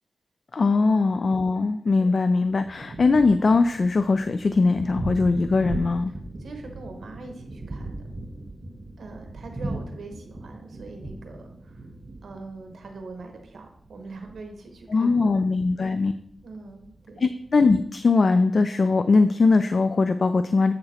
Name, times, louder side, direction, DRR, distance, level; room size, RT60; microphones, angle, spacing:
voice 1, 0.5-6.1 14.9-16.1 17.2-20.7, left 3 dB, 45° left, 10 dB, 0.3 m, -21 dB
Thunder, 2.5-17.7, right 2 dB, 30° right, 0.9 m, -39 dB
voice 2, 6.1-8.0 9.0-11.9 12.2-15.4 15.9-16.1 16.4-17.3, right 3 dB, 75° right, 4 dB, 1.1 m, -43 dB
7.6 x 6.8 x 4.2 m, 0.71 s
wide cardioid pair, 135°, 0 cm